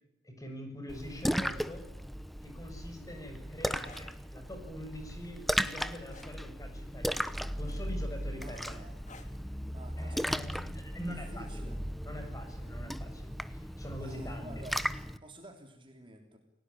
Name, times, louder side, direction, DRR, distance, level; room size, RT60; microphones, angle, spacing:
voice 1, 0.2-1.8 2.4-8.9 10.0-11.7 12.0-14.5, equal, 20° left, 4 dB, 7.2 m, -44 dB
Splash splatter, 0.9-15.2, equal, ahead, 0.9 m, -36 dB
sound 1, 3.8-4.1 6.1-6.4 7.6-8.1 9.1-9.4 10.8-11.0, left 4 dB, 40° left, 2.8 m, -54 dB
voice 2, 8.4-9.0 9.7-10.8 11.1-11.8 14.0-14.9 15.2-16.4, right 1 dB, 25° right, 4 dB, 3.3 m, -51 dB
29.5 x 18.5 x 10.0 m, 0.86 s
head